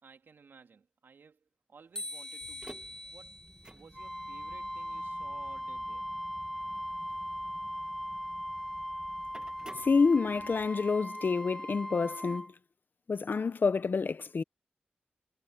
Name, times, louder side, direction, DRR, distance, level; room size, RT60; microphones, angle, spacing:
voice 1, 0.0-2.8 3.1-3.3 3.7-6.1, right 5 dB, 75° right, 3.3 m, -56 dB
sound 1, 2.0-5.0, left 1 dB, 20° left, 1.5 m, -45 dB
sound 2, 2.4-10.7, right 1 dB, 20° right, 1.8 m, -54 dB
Wind instrument woodwind instrument, 3.9-12.5, equal, ahead, 1.4 m, -39 dB
voice 2, 9.8-12.5 13.1-14.4, left 4 dB, 65° left, 1.0 m, -28 dB
cardioid pair, 40°, 4 cm